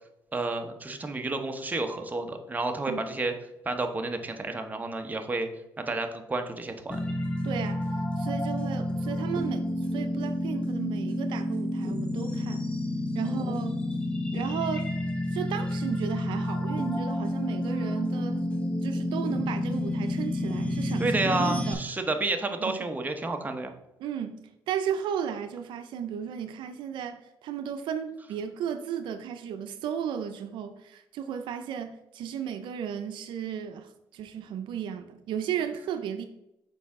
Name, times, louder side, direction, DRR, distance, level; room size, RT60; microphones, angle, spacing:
voice 1, 0.3-3.3 3.6-5.5 5.8-7.0 13.3-13.5 21.0-23.7, right 2 dB, 20° right, 5 dB, 0.9 m, -30 dB
sound 1, 6.9-21.7, left 1 dB, 15° left, 1.1 m, -30 dB
voice 2, 7.4-7.8 8.2-9.7 9.9-12.7 13.1-13.8 14.3-14.9 15.3-18.5 18.8-21.8 22.6-22.9 24.0-36.3, right 8 dB, 80° right, 9 dB, 0.5 m, -34 dB
6.7 x 4.8 x 3.7 m, 0.85 s
cardioid pair, 85°, 8 cm